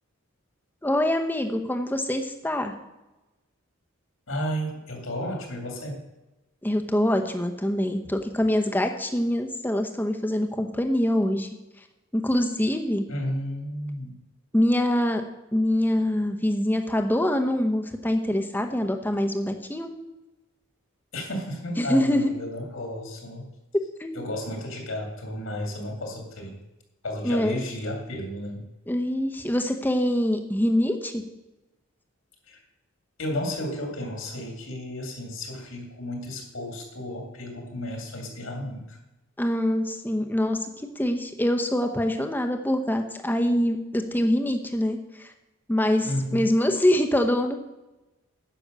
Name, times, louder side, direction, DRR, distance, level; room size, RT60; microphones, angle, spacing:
voice 1, 0.8-2.8 6.6-11.5 12.1-13.1 14.5-15.2 15.5-19.9 21.8-22.3 24.0-24.3 27.2-27.6 28.9-31.2 39.4-40.7 41.0-45.3 45.7-47.6, left 1 dB, 10° left, 5 dB, 0.8 m, -24 dB
voice 2, 4.3-6.0 13.1-14.2 21.1-23.5 24.1-26.6 27.0-28.7 32.5-32.6 33.2-39.0 46.0-46.5, left 1 dB, 70° left, 2 dB, 2.4 m, -33 dB
10.0 x 6.0 x 6.6 m, 1.0 s
head